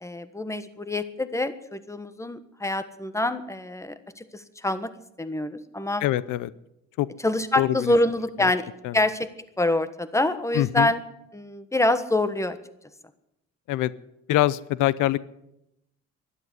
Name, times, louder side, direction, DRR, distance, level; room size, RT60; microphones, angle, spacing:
voice 1, 0.0-4.9 5.2-6.0 7.2-9.3 9.6-11.0 11.3-12.6, left 1 dB, 10° left, 12 dB, 1.3 m, -26 dB
voice 2, 6.0-6.5 7.0-7.1 7.6-7.8 8.4-8.5 8.8-8.9 10.5-10.9 13.7-13.9 14.3-15.2, left 15 dB, 85° left, 19 dB, 0.6 m, -23 dB
12.0 x 11.5 x 9.5 m, 0.83 s
cardioid pair, 90°, 30 cm